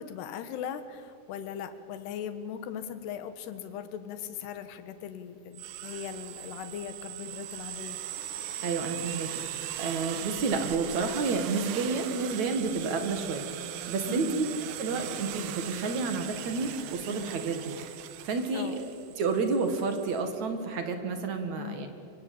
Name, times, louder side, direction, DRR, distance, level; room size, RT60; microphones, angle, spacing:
voice 1, 0.0-8.0 14.1-14.4 18.5-18.8 21.5-21.9, left 8 dB, 70° left, 11 dB, 3.3 m, -39 dB
sound 1, 5.5-20.2, right 11 dB, 80° right, 3.4 m, -39 dB
voice 2, 8.6-14.5 14.8-17.7 18.2-18.9 19.2-21.9, right 4 dB, 50° right, 7 dB, 2.7 m, -30 dB
27.0 x 24.0 x 8.7 m, 2.4 s
omnidirectional pair, 5.2 m